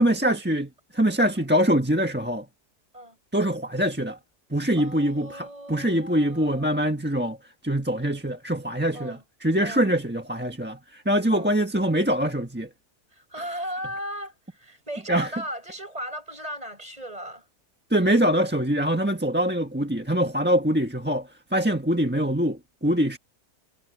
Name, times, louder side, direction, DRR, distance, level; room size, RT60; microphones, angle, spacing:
voice 1, 0.0-2.5 3.3-4.2 4.5-7.4 7.6-12.7 15.1-15.3 17.9-23.2, equal, 5° right, 1.3 m, -24 dB
voice 2, 4.8-6.7 8.9-9.2 9.6-9.9 11.3-11.5 13.1-17.4, equal, 25° right, 8.2 m, -37 dB
omnidirectional pair, 1.6 m